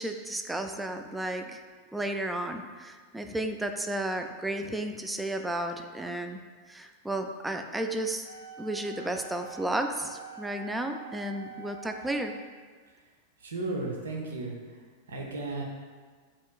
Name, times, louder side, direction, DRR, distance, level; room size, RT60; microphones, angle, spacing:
voice 1, 0.0-1.6 1.9-6.4 6.7-8.2 8.6-12.3, right 1 dB, 5° right, 6 dB, 0.3 m, -33 dB
Wind instrument woodwind instrument, 8.2-12.5, right 7 dB, 70° left, 0.5 m, -45 dB
voice 2, 13.4-14.8 15.1-15.6, right 2 dB, 65° right, 0 dB, 0.7 m, -34 dB
7.3 x 3.0 x 2.3 m, 1.5 s
figure-of-eight pair, 90°, 0 cm